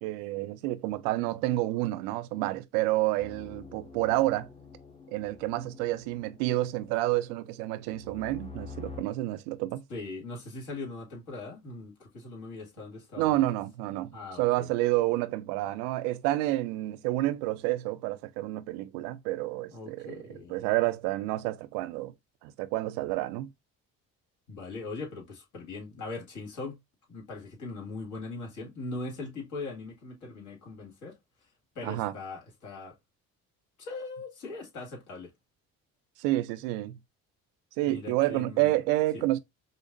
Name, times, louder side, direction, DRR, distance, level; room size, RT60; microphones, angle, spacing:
voice 1, 0.0-4.5 5.1-9.8 13.2-22.1 22.4-23.5 31.8-32.1 36.2-37.0 37.8-39.4, right 17 dB, 90° right, 0.5 m, -29 dB
sound 1, 3.2-9.0, left 4 dB, 20° left, 0.8 m, -48 dB
voice 2, 9.9-13.4 14.1-14.7 19.7-20.6 24.5-26.8 27.1-31.2 31.8-33.0 33.8-35.3 37.8-38.8 39.1-39.2, left 3 dB, 65° left, 2.0 m, -40 dB
5.0 x 2.1 x 2.5 m
supercardioid pair, 75°, 33 cm